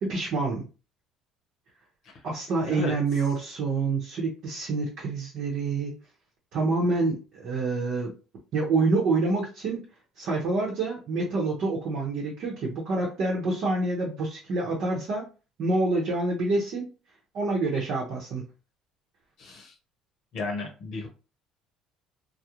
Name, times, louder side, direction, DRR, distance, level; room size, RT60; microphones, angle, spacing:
voice 1, 0.0-0.7 2.2-6.0 6.5-8.1 8.5-9.8 10.2-15.3 15.6-16.9 17.3-18.4, right 3 dB, 60° right, -2 dB, 0.8 m, -27 dB
voice 2, 19.4-19.7 20.3-21.1, left 3 dB, 65° left, 2 dB, 0.7 m, -34 dB
2.3 x 2.1 x 2.9 m, 0.33 s
supercardioid pair, 75°, 0 cm